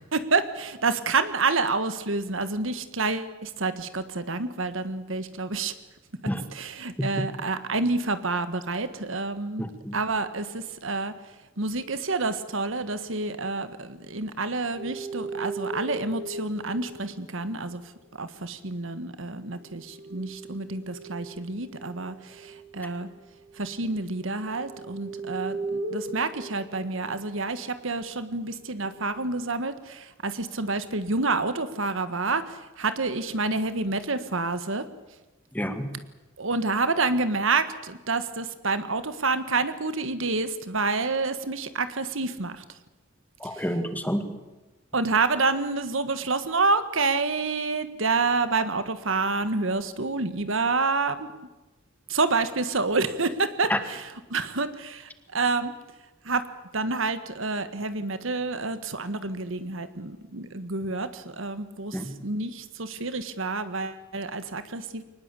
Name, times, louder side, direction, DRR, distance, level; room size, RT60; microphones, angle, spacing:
voice 1, 0.1-5.7 6.5-9.6 9.9-11.1 11.6-17.8 18.2-23.1 23.5-34.9 36.4-42.6 43.5-43.6 44.9-51.3 52.1-55.7 56.2-56.4 56.7-65.0, right 3 dB, 70° right, 11 dB, 1.6 m, -28 dB
voice 2, 9.6-10.0 35.5-36.0 43.4-44.4 53.7-53.8 61.9-62.2, equal, 10° left, 8 dB, 1.9 m, -29 dB
sound 1, 14.8-17.6 19.6-27.3 28.7-29.1, right 2 dB, 50° right, 6.4 m, -38 dB
23.5 x 19.5 x 8.4 m, 1.1 s
head